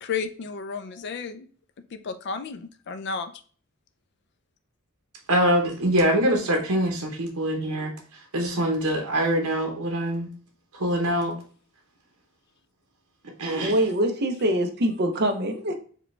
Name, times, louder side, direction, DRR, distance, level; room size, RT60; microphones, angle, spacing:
voice 1, 0.0-1.5 1.9-3.3 13.5-14.3, left 5 dB, 50° left, 0.4 m, -33 dB
voice 2, 5.3-10.3 10.7-11.3 13.4-13.8, right 1 dB, 80° right, 0.9 m, -24 dB
voice 3, 13.6-15.7, right 1 dB, 45° right, 0.6 m, -24 dB
4.9 x 2.2 x 3.2 m
head